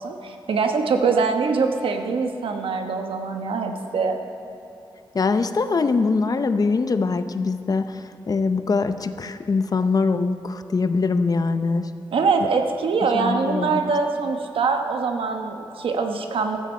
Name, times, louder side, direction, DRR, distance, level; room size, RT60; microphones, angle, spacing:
voice 1, 0.0-4.2 12.1-16.6, right 4 dB, 90° right, 5 dB, 1.1 m, -23 dB
voice 2, 5.1-11.9 13.1-13.9, left 4 dB, 45° left, 10 dB, 0.7 m, -23 dB
15.0 x 13.5 x 4.4 m, 2.9 s
wide cardioid pair, 90°, 9 cm